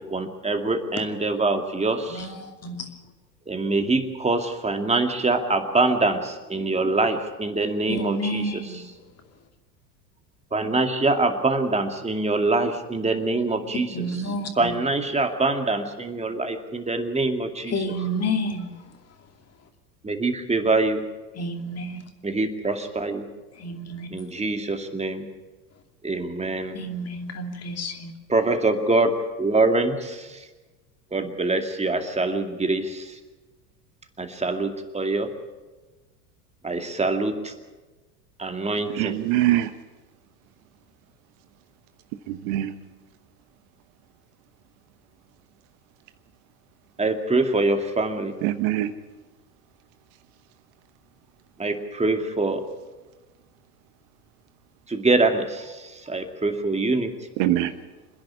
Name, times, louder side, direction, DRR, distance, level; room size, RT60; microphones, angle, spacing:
voice 1, 0.1-2.3 3.5-8.4 10.5-13.9 14.6-17.7 20.0-21.0 22.2-23.3 24.1-25.3 26.0-26.8 28.3-29.1 29.4-30.4 31.1-33.2 34.2-34.7 34.9-35.3 36.6-37.5 38.4-39.1 47.0-48.3 51.6-52.6 54.9-57.1, right 3 dB, 15° right, 2.4 m, -24 dB
voice 2, 2.1-2.9 7.9-9.1 13.9-14.7 17.7-18.9 21.3-22.1 23.5-24.2 26.7-28.1, equal, 30° left, 2.7 m, -30 dB
voice 3, 38.9-39.7 42.3-42.7 48.4-48.9 57.4-57.7, right 14 dB, 55° right, 1.2 m, -23 dB
26.5 x 10.5 x 9.9 m
hypercardioid pair, 85°, 49 cm